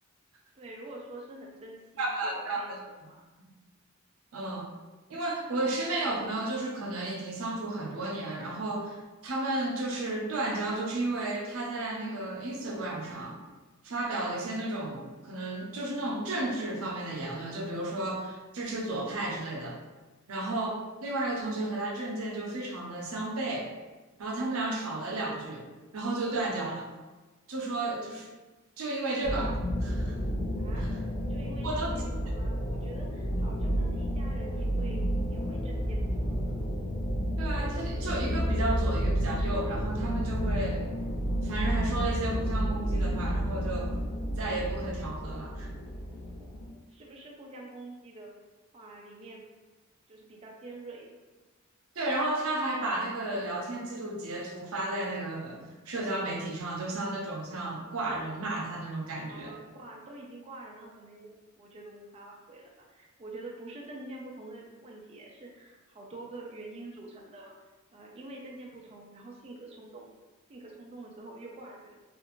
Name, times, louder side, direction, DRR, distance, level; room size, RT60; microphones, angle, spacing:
voice 1, 0.5-3.2 30.6-30.9 31.3-36.2 36.4-36.5 46.9-48.3 48.7-49.4 50.1-51.1 59.2-67.5 67.9-70.1 70.5-72.0, right 2 dB, 30° right, -2 dB, 0.4 m, -46 dB
voice 2, 2.0-2.8 3.4-3.5 4.3-4.7 5.1-13.4 13.8-19.8 20.3-23.7 24.2-25.7 25.9-26.9 27.5-28.3 28.8-30.2 31.6-31.9 37.4-40.8 41.4-44.0 44.4-45.7 52.0-59.5, right 2 dB, 90° right, -1 dB, 0.6 m, -33 dB
sound 1, 29.2-46.7, equal, 85° left, 0.5 m, -31 dB
2.5 x 2.4 x 2.9 m, 1.2 s
head